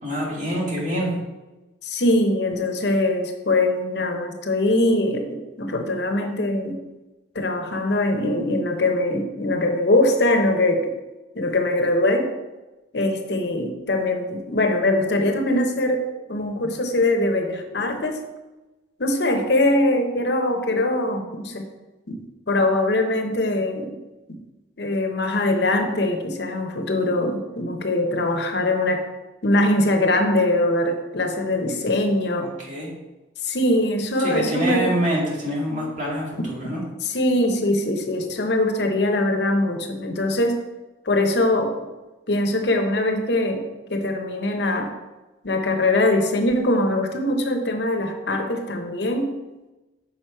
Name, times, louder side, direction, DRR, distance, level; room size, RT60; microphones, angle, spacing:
voice 1, 0.0-1.1 32.3-32.9 34.2-36.8, equal, 40° right, -4 dB, 2.1 m, -26 dB
voice 2, 1.8-6.8 7.3-10.9 11.3-12.3 12.9-18.2 19.0-21.6 22.1-24.0 24.8-29.0 29.4-32.5 33.4-35.0 36.4-36.5 37.0-40.6 41.0-41.7 42.3-44.9 45.4-49.3, left 1 dB, 60° left, 5 dB, 0.8 m, -22 dB
6.2 x 5.1 x 4.5 m, 1.1 s
head